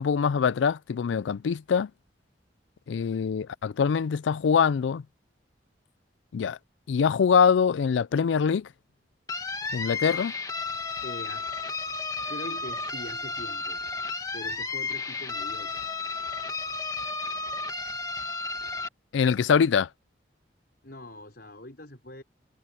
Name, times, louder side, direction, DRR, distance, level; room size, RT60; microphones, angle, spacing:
voice 1, 0.0-1.9 2.9-5.0 6.3-6.6 6.9-8.7 9.7-10.3 19.1-19.9, left 6 dB, 80° left, 0.4 m, -23 dB
sound 1, 9.3-18.9, left 3 dB, 20° left, 1.9 m, -33 dB
voice 2, 11.0-13.8 14.3-15.9 20.8-22.2, left 1 dB, 55° left, 5.6 m, -43 dB
head